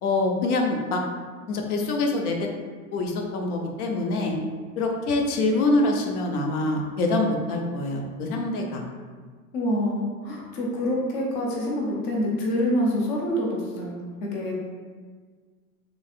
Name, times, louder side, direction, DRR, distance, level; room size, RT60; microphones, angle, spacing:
voice 1, 0.0-1.0 1.5-2.5 2.9-4.4 4.8-8.8, left 2 dB, 70° left, 1 dB, 0.7 m, -25 dB
voice 2, 9.5-14.0 14.3-14.5, left 1 dB, 25° left, -2 dB, 0.3 m, -26 dB
3.3 x 2.6 x 2.4 m, 1.5 s
hypercardioid pair, 115°, 47 cm